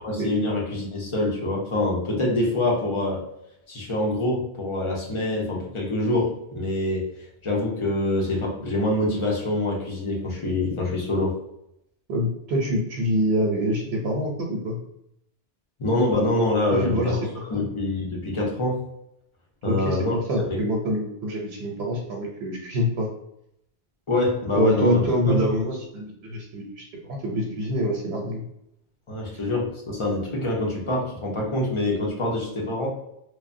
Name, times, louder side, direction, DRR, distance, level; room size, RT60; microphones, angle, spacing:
voice 1, 0.0-3.2 3.7-7.1 7.4-11.3 15.8-17.2 17.5-18.8 19.6-20.1 20.5-20.6 24.1-25.4 29.1-32.9, left 2 dB, 35° left, -2 dB, 0.6 m, -25 dB
voice 2, 12.1-14.8 16.7-17.6 19.6-23.1 24.5-28.4, equal, 85° right, 0 dB, 0.8 m, -26 dB
3.2 x 2.1 x 2.5 m, 0.79 s
omnidirectional pair, 1.1 m